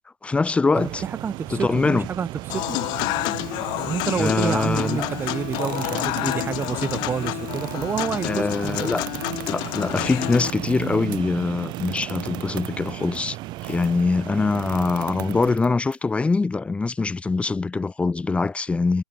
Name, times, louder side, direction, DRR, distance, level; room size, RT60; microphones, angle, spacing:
voice 1, 0.2-1.0 1.5-2.1 4.2-5.1 8.2-9.0 9.5-13.4 13.6-19.0, left 3 dB, 10° left, 2.2 m, -23 dB
voice 2, 0.8-2.8 3.9-9.0, right 6 dB, 15° right, 4.0 m, -28 dB
sound 1, 0.8-15.6, right 18 dB, 35° right, 3.6 m, -35 dB
Human voice / Acoustic guitar / Piano, 2.5-10.5, left 23 dB, 35° left, 0.7 m, -29 dB
sound 2, 5.5-14.0 14.5-15.9, right 15 dB, 60° right, 5.5 m, -41 dB
hypercardioid pair, 120°, 12 cm